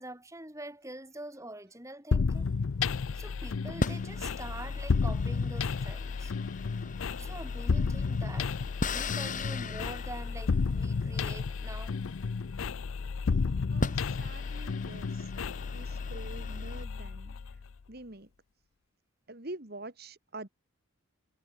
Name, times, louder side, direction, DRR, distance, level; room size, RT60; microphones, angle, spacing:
voice 1, 0.0-2.5 3.1-6.4 7.2-12.0, right 1 dB, 15° right, 4.5 m, -45 dB
sound 1, 2.1-17.7, left 4 dB, 70° left, 0.5 m, -32 dB
sound 2, 2.3-3.1 3.8-12.9 13.4-13.5 13.8-16.8, left 2 dB, 35° left, 2.8 m, -40 dB
voice 2, 13.7-15.3 15.7-17.6 17.9-18.3 19.3-20.5, right 2 dB, 45° right, 2.0 m, -46 dB
head